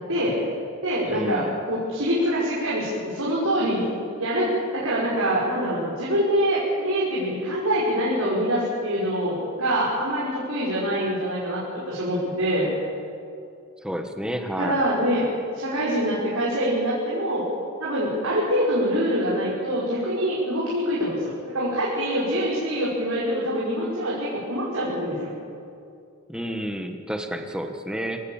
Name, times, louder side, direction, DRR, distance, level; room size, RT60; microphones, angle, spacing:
voice 1, 0.1-0.4 0.8-3.9 4.2-12.7 14.6-15.3 15.5-17.4 17.8-25.3, equal, 80° right, -7 dB, 5.5 m, -25 dB
voice 2, 1.1-1.5 13.8-14.8 26.3-28.2, equal, 5° right, 5 dB, 1.6 m, -30 dB
26.0 x 17.5 x 7.3 m, 2.4 s
head